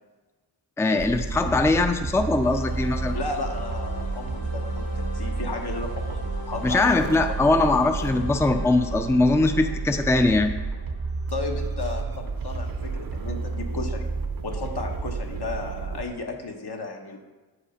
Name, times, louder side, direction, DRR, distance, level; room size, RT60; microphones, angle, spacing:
voice 1, 0.8-3.1 6.6-10.5, left 2 dB, 5° left, 7 dB, 0.5 m, -21 dB
sound 1, 1.0-16.0, right 4 dB, 55° right, 0.8 m, -31 dB
sound 2, 2.4-13.1, left 3 dB, 85° left, 1.7 m, -41 dB
voice 2, 3.1-7.3 11.3-14.1 14.4-17.2, left 3 dB, 65° left, 2 dB, 1.3 m, -34 dB
7.7 x 5.0 x 5.1 m, 1.3 s
cardioid pair, 45°, 42 cm